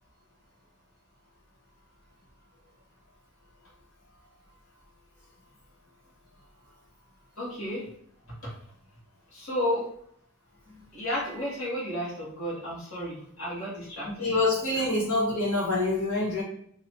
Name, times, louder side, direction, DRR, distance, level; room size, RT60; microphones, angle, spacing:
voice 1, 7.4-7.8 9.3-9.8 10.9-14.3, left 1 dB, 75° left, -7 dB, 1.6 m, -32 dB
voice 2, 14.0-16.4, left 2 dB, 90° left, -6 dB, 1.6 m, -26 dB
3.0 x 2.6 x 4.4 m, 0.65 s
head